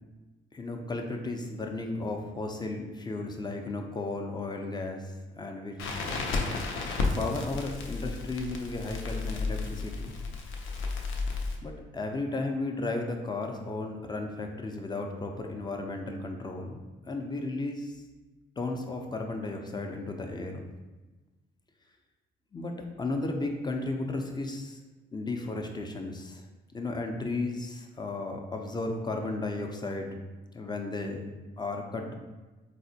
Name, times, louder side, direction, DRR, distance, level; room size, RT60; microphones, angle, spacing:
voice 1, 0.5-6.0 7.2-10.1 11.6-16.8 17.1-17.9 18.6-20.6 22.5-22.7 23.0-24.8 25.1-26.5 26.7-30.2 30.5-31.3 31.6-32.1, left 2 dB, 20° left, 3 dB, 0.4 m, -34 dB
Crackle, 5.8-11.6, left 3 dB, 80° left, 0.5 m, -33 dB
4.0 x 2.1 x 2.7 m, 1.2 s
cardioid pair, 90°, 20 cm